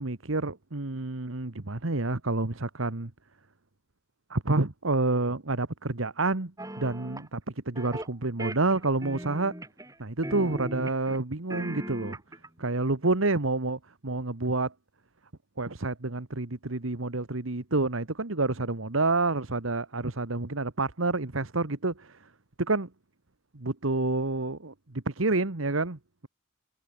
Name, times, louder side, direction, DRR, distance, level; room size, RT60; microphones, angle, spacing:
voice 1, 0.0-3.1 4.3-6.5 6.8-9.5 10.0-12.2 12.6-14.7 15.6-22.3 22.6-22.9 23.5-26.3, right 2 dB, 80° right, 1.6 m, -28 dB
sound 1, 6.6-7.3 7.7-8.1 8.4-9.9 10.2-11.2 11.5-12.5, right 1 dB, 15° right, 6.4 m, -38 dB
head